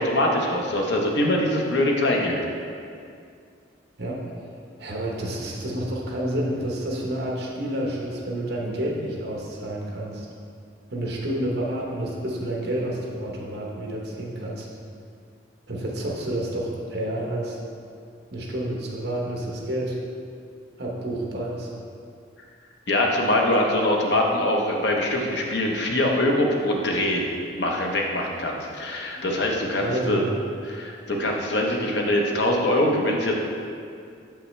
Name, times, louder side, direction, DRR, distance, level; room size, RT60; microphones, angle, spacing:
voice 1, 0.0-2.4 22.9-27.3 27.5-30.3 30.7-33.3, left 1 dB, 65° left, 0 dB, 0.8 m, -23 dB
voice 2, 4.0-4.3 4.8-10.3 10.9-14.7 15.7-17.6 18.3-20.0 20.8-21.7 29.1-29.2 29.8-30.3, right 1 dB, 55° right, -2 dB, 1.0 m, -29 dB
7.2 x 5.5 x 3.2 m, 2.4 s
head